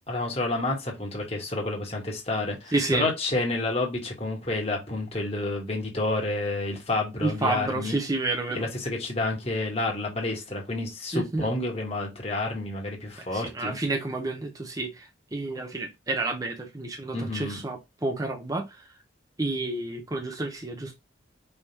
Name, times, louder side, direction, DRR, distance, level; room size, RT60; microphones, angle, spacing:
voice 1, 0.1-8.0 8.5-13.8 17.1-17.6, left 2 dB, 30° left, 1.4 m, -29 dB
voice 2, 2.7-3.1 7.2-8.7 11.1-11.5 13.2-18.8 19.4-20.9, right 2 dB, 20° right, 0.6 m, -30 dB
4.8 x 3.5 x 2.8 m
head